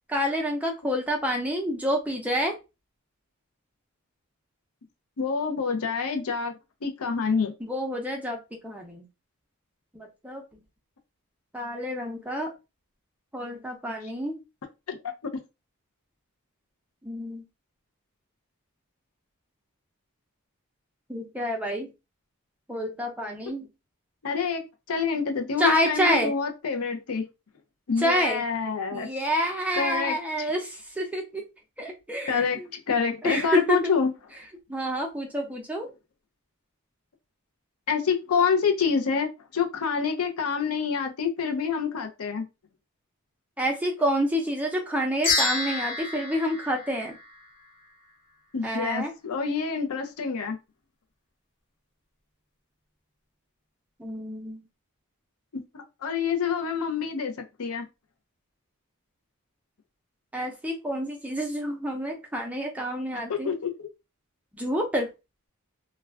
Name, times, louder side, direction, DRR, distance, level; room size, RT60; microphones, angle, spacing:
voice 1, 0.1-2.5 7.6-9.0 9.9-10.4 11.5-12.5 13.3-14.4 17.0-17.4 21.1-21.9 22.7-23.7 25.6-26.3 28.0-28.4 28.9-31.4 31.8-32.7 33.2-33.9 34.7-35.9 43.6-47.2 48.6-49.1 54.0-54.6 60.3-63.5 64.5-65.1, equal, 5° right, 0.5 m, -28 dB
voice 2, 5.2-6.5 6.8-7.5 14.9-15.0 24.2-24.6 24.9-27.3 27.9-29.1 29.7-30.5 32.3-34.1 37.9-42.5 48.5-50.6 55.5-57.3 57.6-57.8 63.3-63.9, left 6 dB, 75° left, 0.6 m, -27 dB
sound 1, 45.2-47.7, left 3 dB, 55° left, 1.1 m, -29 dB
2.3 x 2.2 x 3.3 m
head